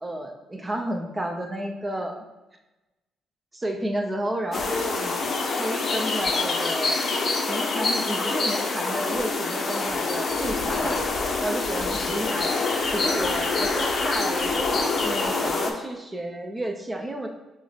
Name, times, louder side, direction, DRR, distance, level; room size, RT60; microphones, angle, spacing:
voice 1, 0.0-2.2 3.5-5.1 5.6-7.0 7.5-11.0 11.4-12.5 12.9-14.7 15.0-17.3, right 1 dB, 20° right, 3 dB, 0.6 m, -31 dB
sound 1, 4.5-15.7, left 3 dB, 45° left, 0.6 m, -26 dB
6.1 x 2.1 x 3.2 m, 1.0 s
cardioid pair, 90°, 0 cm